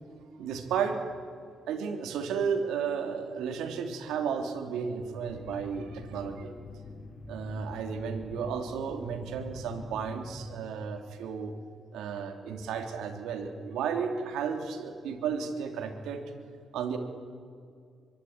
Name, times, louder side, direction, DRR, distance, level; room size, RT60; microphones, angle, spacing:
voice 1, 0.4-1.0 1.7-6.5 7.3-11.5 11.9-16.2 16.7-17.0, right 6 dB, 85° right, 6 dB, 3.3 m, -33 dB
sound 1, 5.3-10.6, left 3 dB, 45° left, 2.9 m, -45 dB
24.0 x 23.0 x 9.9 m, 2.2 s
cardioid pair, 90°, 0 cm